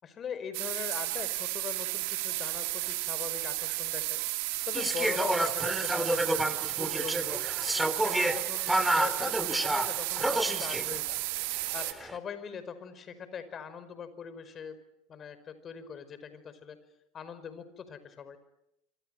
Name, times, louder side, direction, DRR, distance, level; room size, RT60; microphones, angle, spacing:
voice 1, 0.0-4.2 4.7-6.4 6.8-7.4 8.0-11.2 11.6-14.8 15.1-16.8 17.1-18.4, left 7 dB, 40° left, 13 dB, 5.0 m, -41 dB
sound 1, 0.5-11.9, right 20 dB, 70° right, 2.4 m, -33 dB
sound 2, 4.7-11.0 11.8-12.2, right 1 dB, 5° right, 3.0 m, -30 dB
26.5 x 26.0 x 7.8 m, 0.82 s
hypercardioid pair, 80°, 0 cm